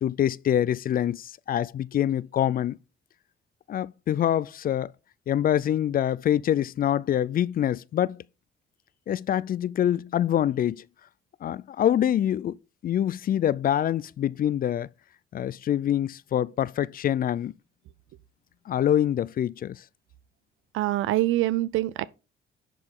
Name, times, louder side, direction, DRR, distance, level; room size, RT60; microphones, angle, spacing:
voice 1, 0.0-2.8 3.7-4.9 5.3-8.2 9.1-10.8 11.4-12.6 12.8-14.9 15.3-17.5 18.7-19.8, left 10 dB, 45° left, 0.4 m, -25 dB
voice 2, 20.7-22.1, right 15 dB, 85° right, 0.5 m, -24 dB
10.5 x 5.0 x 3.7 m
cardioid pair, 90°, 20 cm